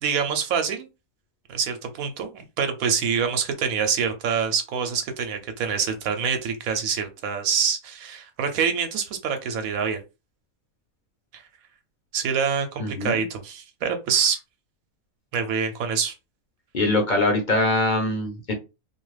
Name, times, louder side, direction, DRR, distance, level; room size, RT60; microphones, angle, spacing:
voice 1, 0.0-0.9 1.5-10.0 11.3-11.4 12.1-14.4 15.3-16.1, right 6 dB, 80° right, 1.0 m, -26 dB
voice 2, 12.8-13.2 16.7-18.5, left 2 dB, 50° left, 0.6 m, -23 dB
2.5 x 2.3 x 3.1 m
omnidirectional pair, 1.5 m